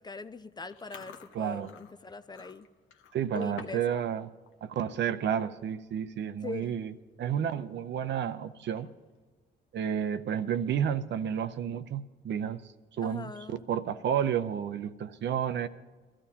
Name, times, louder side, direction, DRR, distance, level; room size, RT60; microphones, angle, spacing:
voice 1, 0.0-2.7 3.3-3.8 6.4-6.8 13.0-13.6, left 3 dB, 20° left, 11 dB, 0.5 m, -41 dB
Chewing mastication, 0.7-3.9 4.2-4.6 5.0-5.2 6.0-6.1 6.3-6.6 7.1-7.2 8.6-9.2, left 7 dB, 85° left, 1.0 m, -50 dB
voice 2, 1.3-1.7 3.1-4.3 4.6-6.9 7.2-8.9 9.7-12.7 13.0-15.7, right 8 dB, 65° right, 11 dB, 0.6 m, -31 dB
21.0 x 14.0 x 2.8 m, 1.3 s
cardioid pair, 90°, 20 cm